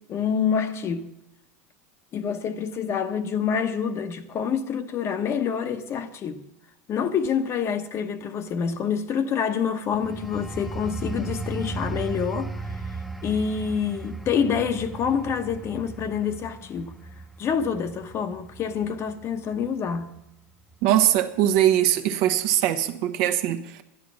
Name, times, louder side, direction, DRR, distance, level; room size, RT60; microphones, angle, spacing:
voice 1, 0.1-1.1 2.1-6.4 6.9-12.8 13.2-17.0 17.4-20.1, left 7 dB, 35° left, 1.0 m, -27 dB
sound 1, 9.9-20.3 20.7-21.0, right 3 dB, ahead, 0.7 m, -36 dB
voice 2, 20.8-23.8, right 11 dB, 60° right, 1.1 m, -21 dB
11.5 x 10.5 x 6.1 m
supercardioid pair, 110°, 7 cm